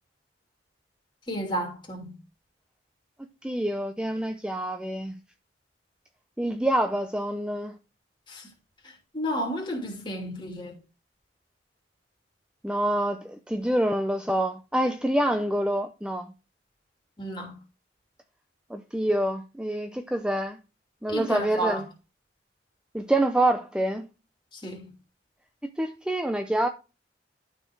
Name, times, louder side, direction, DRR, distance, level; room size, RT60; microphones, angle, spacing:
voice 1, 1.3-2.1 9.1-10.7 17.2-17.5 21.1-21.8 24.6-24.9, right 1 dB, 25° left, 2.8 m, -31 dB
voice 2, 3.4-5.2 6.4-7.8 12.6-16.3 18.7-20.6 21.0-21.9 22.9-24.1 25.8-26.7, right 1 dB, 5° right, 0.5 m, -26 dB
12.0 x 4.5 x 4.6 m
head